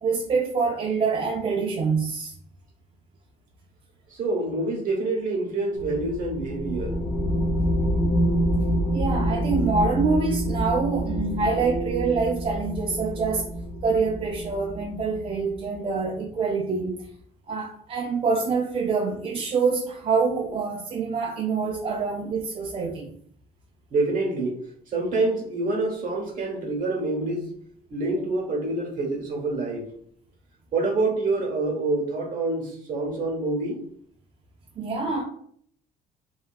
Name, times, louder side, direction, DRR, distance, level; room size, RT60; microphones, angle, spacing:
voice 1, 0.0-2.3 8.9-13.5 13.8-17.1 17.5-23.1 34.8-35.2, right 4 dB, 35° right, -1 dB, 0.4 m, -26 dB
voice 2, 4.1-7.0 10.7-10.9 23.9-27.5 27.9-29.9 30.7-33.8, right 2 dB, 50° right, 0 dB, 0.9 m, -27 dB
sound 1, 5.8-15.8, equal, 85° left, 0.6 m, -27 dB
2.7 x 2.2 x 2.3 m, 0.62 s
cardioid pair, 110°, 17 cm